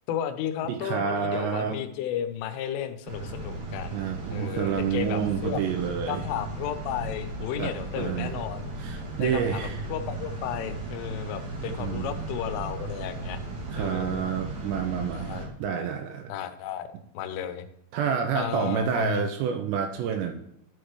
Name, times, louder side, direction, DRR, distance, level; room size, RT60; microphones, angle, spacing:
voice 1, 0.1-4.0 4.3-5.6 6.1-8.7 9.2-13.4 13.8-14.2 15.1-15.4 16.3-16.9 17.1-17.7 18.4-19.3, left 10 dB, 85° left, 10 dB, 3.2 m, -33 dB
voice 2, 0.7-1.8 3.9-6.3 7.6-8.4 8.8-9.8 11.7-12.2 13.7-16.3 17.9-20.3, right 7 dB, 80° right, 6 dB, 2.7 m, -29 dB
sound 1, 3.1-15.5, right 2 dB, 60° right, 2.0 m, -36 dB
12.0 x 6.5 x 3.1 m, 0.74 s
omnidirectional pair, 5.6 m